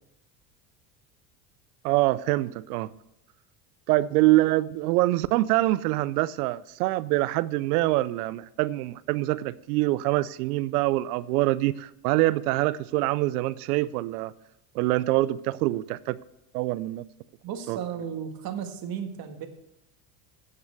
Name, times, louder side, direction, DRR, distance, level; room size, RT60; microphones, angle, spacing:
voice 1, 1.8-2.9 3.9-14.3 14.7-16.2 16.5-17.0 17.7-17.8, right 18 dB, 75° right, 0.6 m, -25 dB
voice 2, 17.4-19.5, right 8 dB, 50° right, 1.9 m, -34 dB
9.0 x 6.6 x 8.2 m
hypercardioid pair, 90°, 46 cm